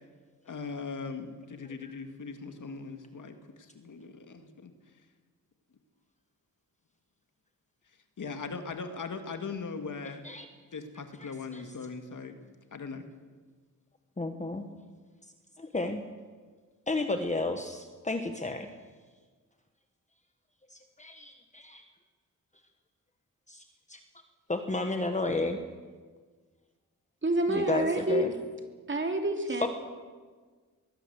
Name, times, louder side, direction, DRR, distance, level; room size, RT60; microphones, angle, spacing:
voice 1, 0.5-4.7 8.2-10.2 10.7-12.4 12.7-13.1, left 4 dB, 65° left, 7 dB, 2.2 m, -39 dB
voice 2, 11.2-11.6 14.2-14.6 15.6-16.0 16.9-18.7 20.7-21.8 23.5-23.6 23.9-24.0 24.5-25.6 27.5-28.3 29.6-29.7, left 2 dB, 20° left, 6 dB, 1.3 m, -32 dB
voice 3, 27.2-28.3 28.9-29.7, right 1 dB, 35° right, 4 dB, 3.0 m, -28 dB
23.0 x 18.0 x 8.1 m, 1.5 s
wide cardioid pair, 140°, 33 cm